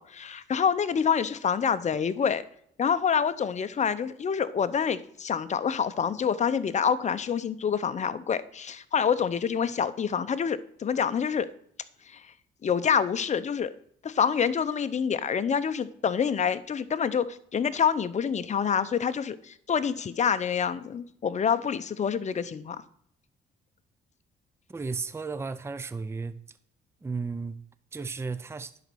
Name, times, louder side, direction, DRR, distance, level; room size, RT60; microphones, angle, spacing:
voice 1, 0.0-2.4 2.8-11.5 12.1-12.3 12.6-13.7 14.0-22.8, left 7 dB, 35° left, 0.7 m, -27 dB
voice 2, 24.7-26.6 27.0-27.6 27.9-28.7, right 4 dB, 15° right, 0.5 m, -34 dB
10.5 x 4.1 x 6.9 m
cardioid pair, 90°, 20 cm